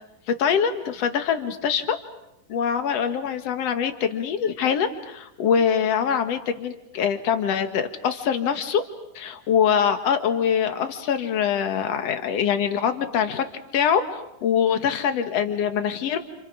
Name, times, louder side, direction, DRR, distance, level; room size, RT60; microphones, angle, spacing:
voice 1, 0.3-2.0 2.5-8.8 9.2-13.4 13.7-16.2, left 7 dB, 55° left, 8 dB, 2.3 m, -24 dB
29.5 x 29.5 x 5.1 m, 0.87 s
omnidirectional pair, 3.9 m